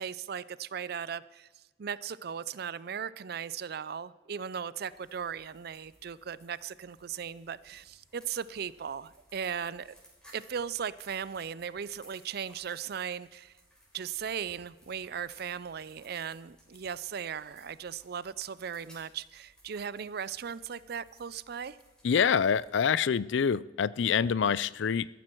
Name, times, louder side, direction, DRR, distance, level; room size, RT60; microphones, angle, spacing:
voice 1, 0.0-9.9 10.3-13.5 13.9-21.8, right 7 dB, 55° right, 18 dB, 0.5 m, -37 dB
sound 1, 4.9-22.7, equal, 5° left, 4.1 m, -61 dB
voice 2, 22.0-25.1, left 7 dB, 75° left, 20 dB, 0.4 m, -26 dB
14.0 x 13.5 x 4.5 m, 1.1 s
head